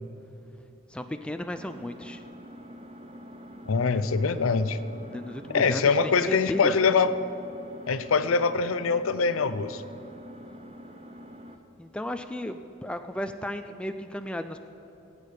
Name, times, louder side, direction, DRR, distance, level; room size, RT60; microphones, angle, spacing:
voice 1, 0.9-2.2 5.1-5.9 6.2-6.8 11.8-14.6, left 1 dB, 5° left, 8 dB, 0.3 m, -34 dB
Engine, 1.6-11.6, equal, 30° right, 0.7 m, -46 dB
voice 2, 3.7-4.8 5.5-7.1 7.9-9.8, left 5 dB, 80° left, 13 dB, 0.5 m, -23 dB
19.0 x 8.6 x 4.9 m, 3.0 s
head